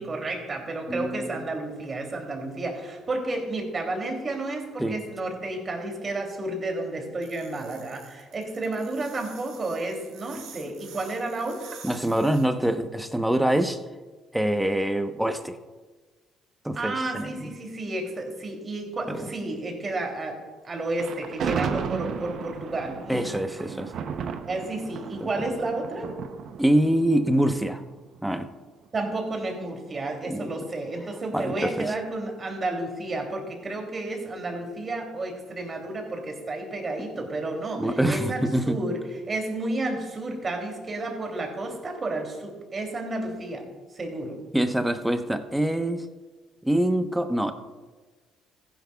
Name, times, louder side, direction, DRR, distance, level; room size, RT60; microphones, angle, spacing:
voice 1, 0.0-11.6 16.7-23.4 24.5-26.1 28.9-43.7 43.9-44.4, right 2 dB, 35° right, 2 dB, 2.9 m, -31 dB
voice 2, 0.9-1.5 4.8-5.0 11.8-13.8 14.3-15.6 16.6-17.5 19.1-19.3 21.5-21.6 23.1-23.9 25.2-25.4 26.6-27.8 28.2-28.5 30.3-30.5 31.3-31.9 37.8-38.8 44.5-46.1 46.6-47.5, right 1 dB, 5° right, 8 dB, 1.0 m, -25 dB
sound 1, 7.2-12.4, right 6 dB, 80° right, 3.1 m, -47 dB
Thunder, 20.9-28.1, right 6 dB, 60° right, 0.7 m, -34 dB
15.0 x 11.0 x 2.3 m, 1.3 s
supercardioid pair, 65°, 0 cm